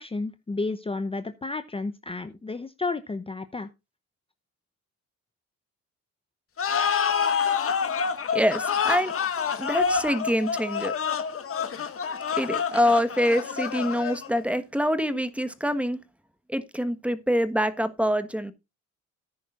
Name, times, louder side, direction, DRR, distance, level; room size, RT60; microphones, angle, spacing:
voice 1, 0.0-3.7, left 3 dB, 20° left, 0.9 m, -32 dB
sound 1, 6.6-14.4, left 6 dB, 45° left, 1.7 m, -27 dB
voice 2, 8.3-9.1 9.6-11.0 12.4-16.0 16.5-18.5, equal, 5° right, 1.3 m, -25 dB
13.5 x 9.9 x 2.5 m
cardioid pair, 90°, 30 cm